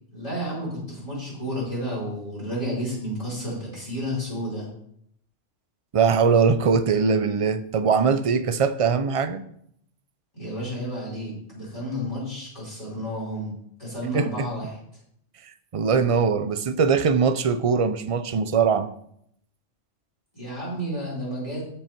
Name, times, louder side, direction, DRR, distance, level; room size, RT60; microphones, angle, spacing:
voice 1, 0.1-4.7 10.3-13.5 13.8-14.8 20.3-21.6, equal, 25° left, -6 dB, 4.7 m, -31 dB
voice 2, 5.9-9.4 14.1-14.5 15.7-18.9, right 5 dB, 45° right, 12 dB, 0.4 m, -21 dB
13.5 x 5.5 x 4.5 m, 0.70 s
omnidirectional pair, 1.3 m